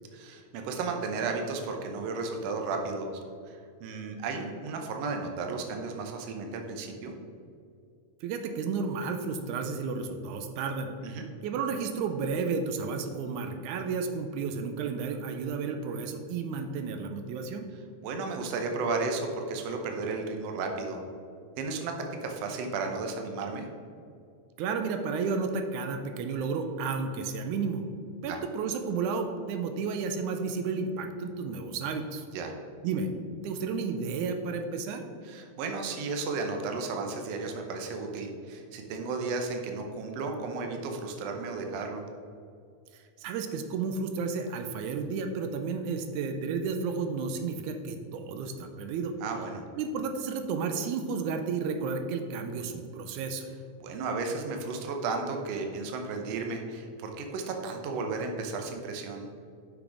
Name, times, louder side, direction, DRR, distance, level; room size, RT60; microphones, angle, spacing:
voice 1, 0.1-3.1 3.5-7.1 11.0-11.3 18.0-21.0 21.6-21.9 22.2-23.7 28.2-28.4 32.3-32.5 35.2-42.0 49.2-49.6 53.8-59.3, right 4 dB, 70° right, 3 dB, 1.7 m, -34 dB
voice 2, 8.2-10.9 11.4-17.7 24.6-27.8 28.2-32.3 32.8-33.1 33.4-35.0 43.2-49.1 49.8-53.5, right 5 dB, 85° right, 6 dB, 2.0 m, -32 dB
6.2 x 6.0 x 4.9 m, 2.4 s
omnidirectional pair, 3.4 m